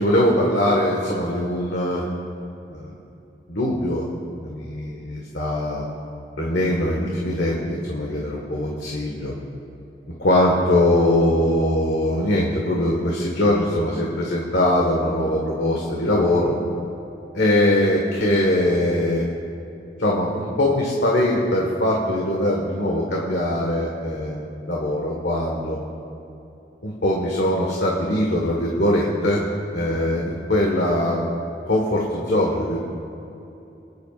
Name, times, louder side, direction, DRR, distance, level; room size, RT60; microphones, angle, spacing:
voice 1, 0.0-2.1 2.7-2.9 3.5-4.1 4.4-5.8 6.4-9.3 10.2-16.5 17.3-19.2 20.0-25.8 26.8-29.5 29.7-31.2 31.7-32.8, left 1 dB, 85° left, -3 dB, 1.7 m, -21 dB
27.5 x 10.5 x 2.6 m, 2.9 s
head